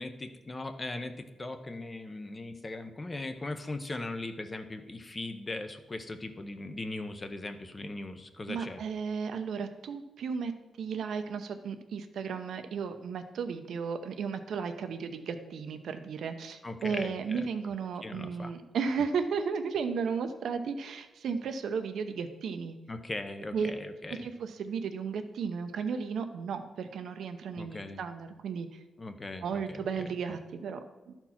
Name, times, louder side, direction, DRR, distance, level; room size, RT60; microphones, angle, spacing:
voice 1, 0.0-8.8 16.6-17.5 18.0-18.5 22.9-24.3 27.6-28.0 29.0-30.1, left 2 dB, 25° left, 8 dB, 0.7 m, -39 dB
voice 2, 8.5-10.5 10.8-22.8 23.5-23.7 24.2-28.8 29.4-30.8 31.1-31.2, right 6 dB, 75° right, 8 dB, 0.7 m, -34 dB
12.0 x 4.5 x 5.7 m, 1.1 s
wide cardioid pair, 135°, 0 cm